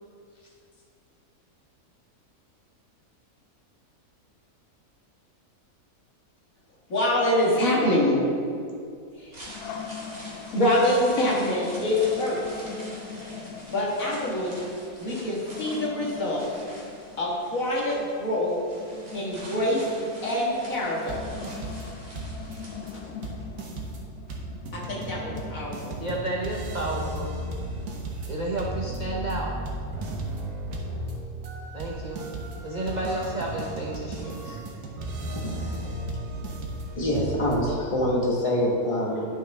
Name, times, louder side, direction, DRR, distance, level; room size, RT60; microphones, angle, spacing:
voice 1, 6.9-8.2 9.2-9.3 10.5-12.4 13.7-14.5 15.0-16.4 17.2-18.6 19.1-19.8 20.2-21.2 24.7-25.9, left 1 dB, 60° left, -5 dB, 2.2 m, -25 dB
sound 1, 9.1-23.3 23.6-23.7, right 1 dB, 25° right, 1.9 m, -46 dB
sound 2, 9.5-27.2, left 6 dB, 90° left, 1.2 m, -42 dB
sound 3, 21.1-21.9 22.2-22.6 22.9-23.0 23.2-37.6, right 1 dB, 75° right, 1.5 m, -35 dB
voice 2, 26.0-27.3 28.3-29.5 31.7-32.3 32.6-34.6, right 2 dB, 50° right, -2 dB, 0.5 m, -31 dB
voice 3, 37.0-39.3, left 1 dB, 20° left, -3 dB, 1.4 m, -25 dB
11.0 x 5.9 x 3.5 m, 2.3 s
omnidirectional pair, 1.6 m